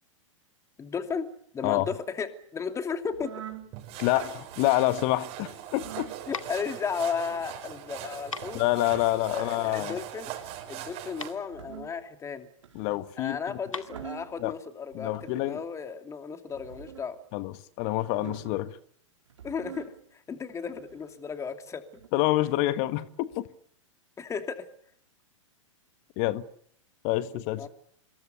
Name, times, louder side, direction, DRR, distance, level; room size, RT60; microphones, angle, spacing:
voice 1, 0.8-1.3 1.5-3.5 6.3-8.6 9.3-10.3 10.7-12.5 13.2-17.2 19.4-21.8 24.2-24.7 27.6-27.7, left 6 dB, 15° left, 2.7 m, -34 dB
sound 1, 3.1-3.7 4.4-4.8 5.7-6.2 7.2-7.6 8.7-9.2 10.3-10.7 11.4-12.0 12.6-13.1 13.7-14.4 15.1-15.6 16.5-17.1 18.0-18.6 19.3-19.9 20.6-21.1 21.9-22.1, right 10 dB, 70° right, 4.5 m, -45 dB
sound 2, 3.7-11.3, right 12 dB, 35° right, 6.1 m, -41 dB
voice 2, 4.0-6.1 8.5-10.0 12.7-13.6 14.4-14.5 14.9-15.6 17.3-18.8 22.1-23.5 26.2-26.4 27.0-27.7, left 17 dB, 40° left, 1.4 m, -27 dB
sound 3, 5.7-15.2, left 5 dB, 80° left, 2.2 m, -44 dB
27.0 x 22.5 x 6.9 m
figure-of-eight pair, 105°, 17 cm